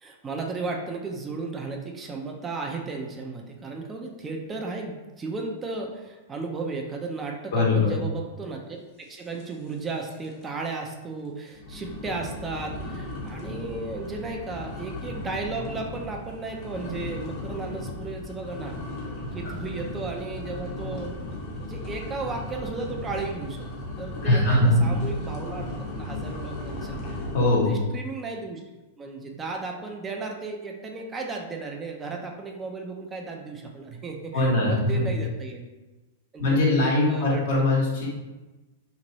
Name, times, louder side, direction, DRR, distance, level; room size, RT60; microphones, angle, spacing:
voice 1, 0.0-8.8 9.1-18.8 19.3-21.1 21.6-25.7 25.9-27.2 27.7-28.6 29.0-35.6 36.3-37.4, right 3 dB, 20° right, 1 dB, 0.5 m, -34 dB
voice 2, 7.5-7.9 19.4-19.5 24.2-24.9 27.3-27.7 34.3-35.1 36.4-38.1, left 2 dB, 70° left, -4 dB, 1.4 m, -21 dB
sound 1, 9.4-9.8 10.0-10.4 10.9-11.0 11.5-27.7, left 1 dB, 45° left, 1.0 m, -36 dB
3.0 x 2.5 x 4.0 m, 1.1 s
hypercardioid pair, 120°, 0 cm